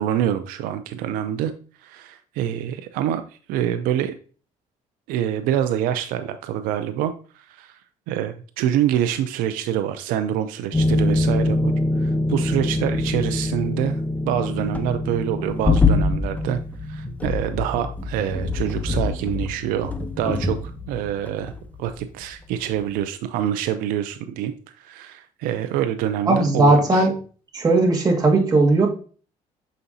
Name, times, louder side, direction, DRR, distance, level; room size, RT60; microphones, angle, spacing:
voice 1, 0.0-1.5 1.8-4.1 5.1-7.8 8.1-11.7 12.0-16.6 16.9-20.6 20.9-21.5 21.8-27.1, right 10 dB, 90° right, 10 dB, 0.5 m, -26 dB
sound 1, 10.7-22.3 22.5-22.8, left 2 dB, 10° left, 0.8 m, -24 dB
voice 2, 26.3-27.1 27.5-28.9, right 2 dB, 25° right, -1 dB, 1.9 m, -17 dB
6.8 x 5.1 x 2.7 m, 0.40 s
cardioid pair, 105°, 14 cm